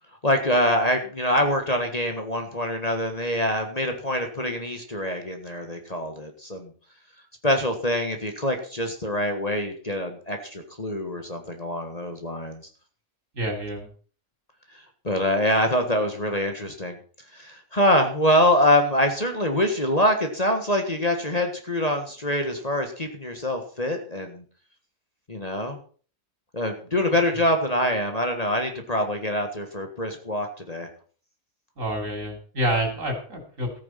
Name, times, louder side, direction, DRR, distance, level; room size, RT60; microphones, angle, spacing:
voice 1, 0.2-6.7 7.4-12.6 15.0-17.0 17.3-24.4 25.3-25.8 26.5-30.9, left 1 dB, 25° left, 5 dB, 1.7 m, -25 dB
voice 2, 13.3-13.9 31.8-33.8, right 1 dB, 60° right, 4 dB, 3.9 m, -28 dB
14.0 x 9.1 x 5.8 m, 0.42 s
omnidirectional pair, 1.5 m